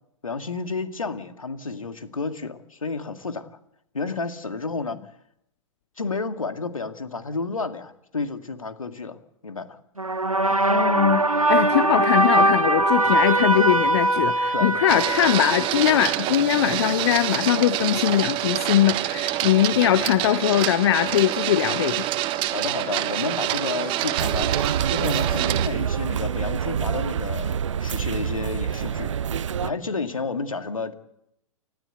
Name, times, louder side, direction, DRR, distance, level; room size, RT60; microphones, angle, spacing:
voice 1, 0.2-3.6 3.9-5.0 6.0-9.8 14.5-14.7 22.4-24.5 24.8-30.9, left 4 dB, 75° left, 8 dB, 2.2 m, -31 dB
sound 1, 10.0-16.4, right 2 dB, 90° right, 1.0 m, -21 dB
voice 2, 10.7-22.1, left 12 dB, 50° left, 13 dB, 0.9 m, -21 dB
Printer, 14.9-25.7, right 14 dB, 30° right, 1.3 m, -26 dB
sound 2, 24.2-29.7, right 8 dB, 60° right, 0.8 m, -26 dB
29.5 x 13.0 x 8.1 m, 0.80 s
figure-of-eight pair, 105°, 17 cm